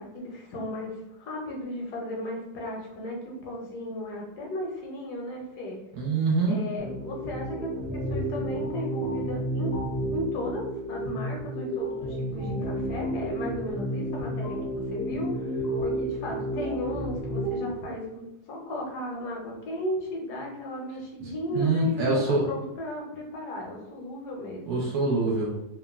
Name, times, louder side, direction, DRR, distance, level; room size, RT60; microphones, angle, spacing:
voice 1, 0.0-5.8 6.5-7.7 8.1-9.7 10.1-24.8, left 1 dB, 80° left, -1 dB, 1.3 m, -35 dB
voice 2, 6.0-6.7 21.2-22.5 24.7-25.5, right 3 dB, 75° right, -4 dB, 1.1 m, -25 dB
sound 1, 6.8-17.8, right 1 dB, 65° left, 0.8 m, -31 dB
3.0 x 2.1 x 2.3 m, 0.91 s
omnidirectional pair, 1.7 m